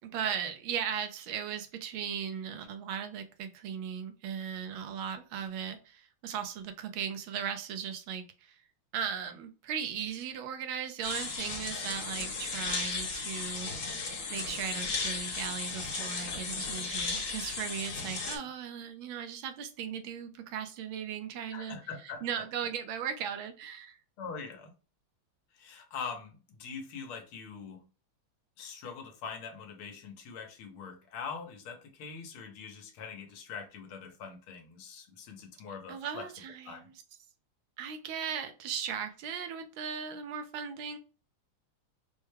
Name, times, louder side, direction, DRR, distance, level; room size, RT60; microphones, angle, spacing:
voice 1, 0.0-8.6 8.9-13.7 14.3-21.8 22.0-24.0 35.9-36.9 37.8-41.0, right 8 dB, 80° right, 1.4 m, -37 dB
sound 1, 11.0-18.4, left 4 dB, 55° left, 1.0 m, -35 dB
voice 2, 21.5-22.3 24.2-24.7 25.5-27.8 28.6-36.3 36.7-36.9, left 5 dB, 85° left, 1.7 m, -43 dB
4.7 x 2.2 x 3.2 m
omnidirectional pair, 2.3 m